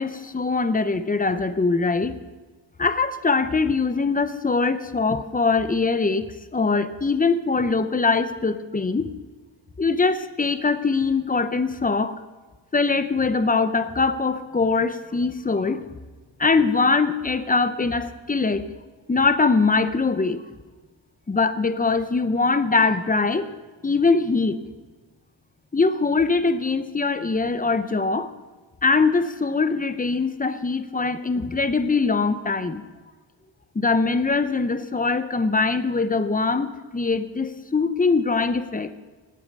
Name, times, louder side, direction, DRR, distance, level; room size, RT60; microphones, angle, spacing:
voice 1, 0.0-2.2 2.8-6.3 6.5-9.1 9.8-12.2 12.7-15.8 16.4-18.7 19.1-20.4 21.3-23.5 23.8-24.6 25.7-28.3 28.8-32.8 33.7-38.9, left 4 dB, 20° left, 11 dB, 0.7 m, -22 dB
19.5 x 8.5 x 5.4 m, 1.3 s
wide cardioid pair, 110°, 45 cm